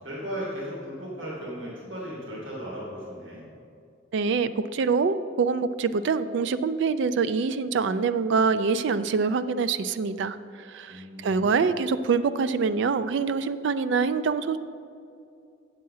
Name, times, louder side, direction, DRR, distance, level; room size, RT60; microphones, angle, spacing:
voice 1, 0.0-3.5 10.9-11.6, equal, 90° right, -5 dB, 2.1 m, -36 dB
voice 2, 4.1-14.6, right 5 dB, 65° right, 12 dB, 0.3 m, -25 dB
7.6 x 7.5 x 5.5 m, 2.5 s
head